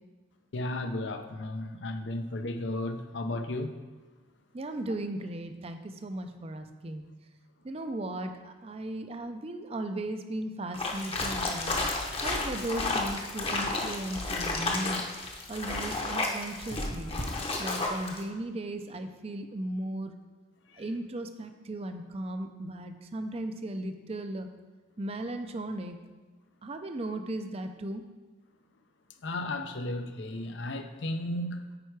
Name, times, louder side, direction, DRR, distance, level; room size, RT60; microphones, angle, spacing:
voice 1, 0.5-3.8 20.7-20.8 29.2-31.6, left 1 dB, 70° left, 0.6 m, -34 dB
voice 2, 4.5-7.0 7.6-11.8 12.2-15.0 15.5-17.1 17.6-20.2 20.8-24.5 25.0-26.0 26.6-28.0, right 1 dB, 30° right, 0.5 m, -36 dB
sound 1, 10.7-18.2, left 2 dB, 30° left, 0.8 m, -32 dB
8.9 x 4.6 x 4.7 m
head